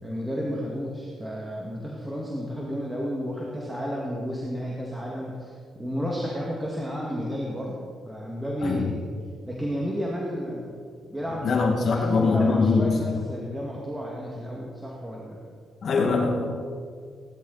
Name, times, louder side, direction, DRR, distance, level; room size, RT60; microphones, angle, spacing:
voice 1, 0.0-7.8 8.0-9.1 9.4-10.7 11.1-15.4, equal, 10° right, -3 dB, 2.4 m, -32 dB
voice 2, 11.4-13.0 15.8-16.5, left 4 dB, 60° left, 1 dB, 2.3 m, -22 dB
18.0 x 11.5 x 4.3 m, 2.1 s
cardioid pair, 85°, 0 cm